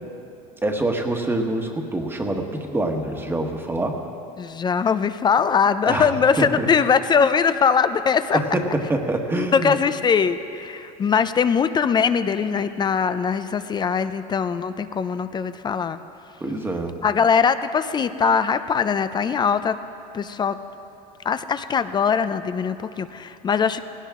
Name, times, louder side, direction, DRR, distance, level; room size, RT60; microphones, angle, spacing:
voice 1, 0.6-4.1 5.9-6.1 6.4-6.7 8.3-9.7 16.4-17.0, right 2 dB, 10° right, 3 dB, 1.4 m, -25 dB
voice 2, 4.4-8.4 9.3-16.0 17.0-19.8 20.1-20.6 21.2-23.9, left 6 dB, 25° left, 12 dB, 0.5 m, -21 dB
18.0 x 16.5 x 3.7 m, 2.7 s
supercardioid pair, 115°, 19 cm